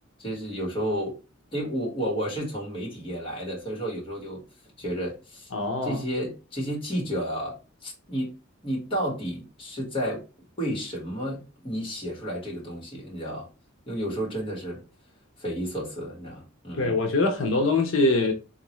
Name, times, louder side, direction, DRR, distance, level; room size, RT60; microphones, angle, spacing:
voice 1, 0.2-1.2 1.5-4.4 4.8-5.5 5.8-8.4 8.6-10.2 10.6-13.5 13.9-14.8 15.4-16.9, equal, 30° left, 1.5 m, -31 dB
voice 2, 5.5-6.0 16.8-18.3, left 2 dB, 85° left, 0.7 m, -23 dB
3.8 x 2.5 x 3.0 m
head